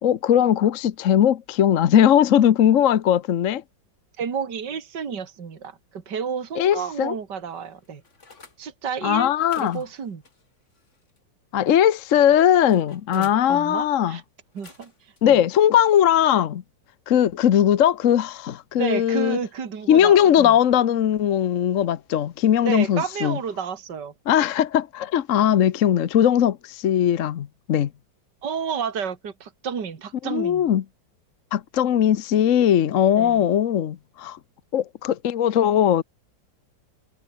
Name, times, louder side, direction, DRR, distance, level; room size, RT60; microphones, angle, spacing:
voice 1, 0.0-3.6 6.6-7.1 9.0-9.8 11.5-14.2 15.2-16.6 17.1-19.4 19.9-23.4 24.3-27.9 30.2-30.8 31.5-34.4 34.7-36.0, left 10 dB, 55° left, 1.0 m, -19 dB
voice 2, 4.2-8.0 8.6-9.3 9.6-10.2 13.1-14.2 14.5-15.4 18.8-20.5 22.6-24.1 28.4-30.7 33.2-33.5, right 6 dB, 65° right, 2.8 m, -31 dB
sound 1, 7.5-8.6 9.3-11.2 11.7-13.4 14.4-15.2 15.7-15.9, left 3 dB, 35° left, 3.1 m, -51 dB
omnidirectional pair, 2.1 m